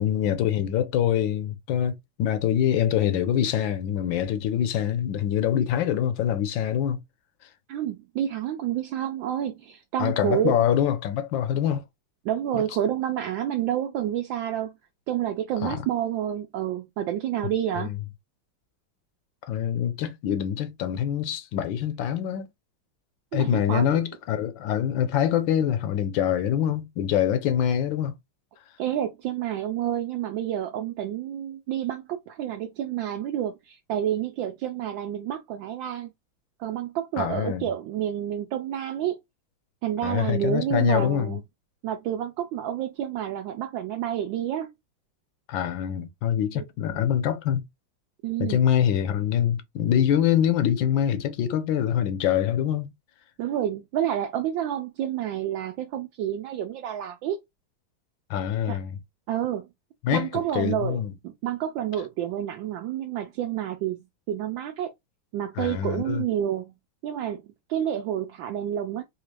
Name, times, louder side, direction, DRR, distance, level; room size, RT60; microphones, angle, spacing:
voice 1, 0.0-7.0 10.0-11.8 12.5-12.6 15.6-15.8 17.8-18.0 19.5-22.5 23.3-28.1 37.2-37.7 40.0-41.4 45.5-47.6 48.4-52.9 58.3-59.0 60.0-61.1 65.6-66.3, left 10 dB, 75° left, 1.3 m, -25 dB
voice 2, 7.7-10.6 12.2-14.7 15.1-17.9 23.3-24.0 28.8-36.1 36.6-39.2 39.8-41.4 41.8-44.7 46.6-46.7 46.9-47.0 48.2-48.6 53.4-57.4 58.7-58.8 59.3-59.7 60.1-61.0 61.2-64.0 64.3-64.9 65.3-66.7 67.0-69.0, right 10 dB, 75° right, 1.3 m, -29 dB
4.2 x 2.4 x 3.1 m
omnidirectional pair, 2.2 m